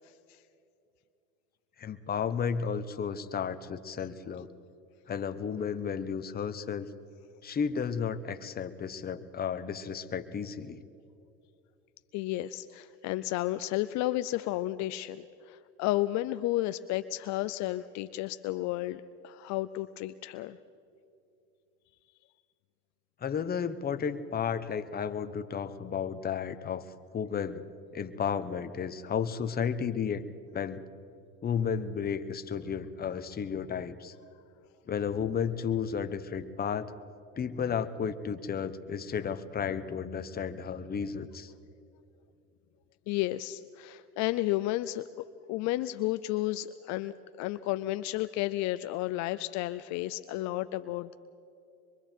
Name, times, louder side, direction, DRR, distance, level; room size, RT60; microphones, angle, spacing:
voice 1, 1.8-4.5 5.1-6.9 7.4-10.8 23.2-27.6 27.9-30.2 30.5-30.8 31.4-34.1 34.9-36.9 37.4-41.5, left 7 dB, 30° left, 10 dB, 1.1 m, -33 dB
voice 2, 12.1-20.6 43.1-51.1, left 16 dB, 65° left, 12 dB, 0.6 m, -32 dB
25.0 x 23.0 x 4.6 m, 2.7 s
supercardioid pair, 100°, 31 cm